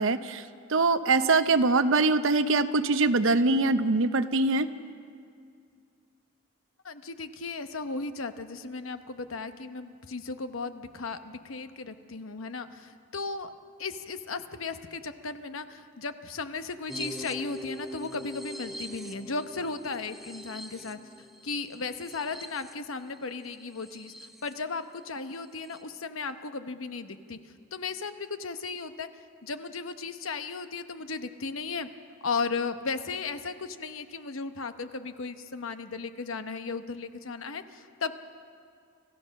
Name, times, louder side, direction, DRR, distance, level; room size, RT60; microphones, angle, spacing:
voice 1, 0.0-4.7, right 3 dB, 70° right, 11 dB, 0.8 m, -23 dB
voice 2, 6.8-13.5 13.8-21.0 21.4-27.4 27.7-29.1 29.4-31.9 32.2-38.1, left 4 dB, 80° left, 9 dB, 0.9 m, -35 dB
sound 1, 16.9-24.5 25.0-25.1 25.3-25.8, equal, ahead, 0.8 m, -43 dB
26.5 x 15.0 x 6.4 m, 2.3 s
head